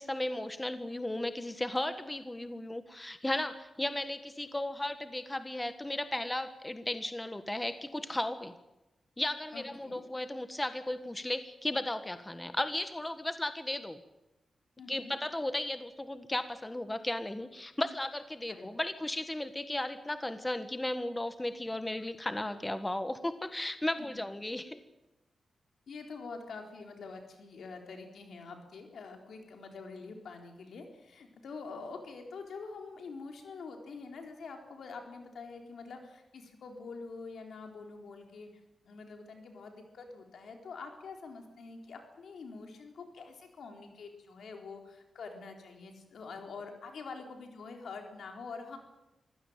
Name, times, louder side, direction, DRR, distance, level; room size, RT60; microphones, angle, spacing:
voice 1, 0.0-8.5 9.2-14.0 14.9-24.8, left 1 dB, 15° left, 10 dB, 1.5 m, -35 dB
voice 2, 9.5-10.0 14.8-15.1 18.5-18.6 24.0-24.2 25.9-38.5 38.8-48.8, left 4 dB, 80° left, 3 dB, 4.1 m, -46 dB
24.0 x 16.0 x 9.1 m, 0.97 s
cardioid pair, 75°, 0 cm